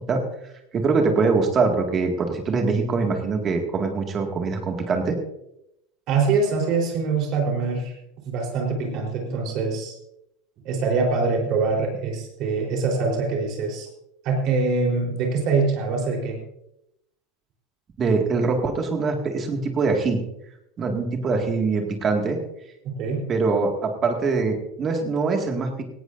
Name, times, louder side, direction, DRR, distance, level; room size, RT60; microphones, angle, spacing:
voice 1, 0.7-5.2 18.0-20.2 20.8-22.4 23.3-25.8, right 4 dB, 20° right, 3 dB, 2.1 m, -23 dB
voice 2, 6.1-7.9 8.2-9.9 10.6-13.9 14.2-16.4 22.8-23.2, right 4 dB, 35° right, 0 dB, 4.1 m, -24 dB
18.0 x 17.5 x 2.7 m, 0.80 s
supercardioid pair, 175°, 0 cm